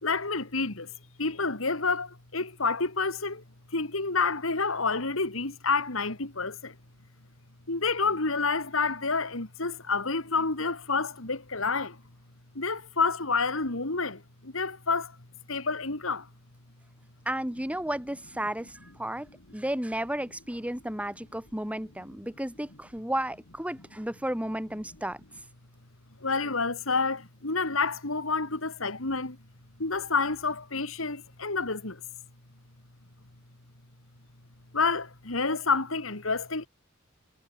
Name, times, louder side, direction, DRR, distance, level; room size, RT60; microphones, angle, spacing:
voice 1, 0.0-0.9 1.2-3.4 3.7-6.7 7.7-12.0 12.5-15.1 15.5-16.3 26.2-29.4 29.8-32.0 34.7-36.7, left 4 dB, 75° left, 2.7 m, -29 dB
voice 2, 17.3-25.2, right 1 dB, 5° right, 4.5 m, -33 dB
head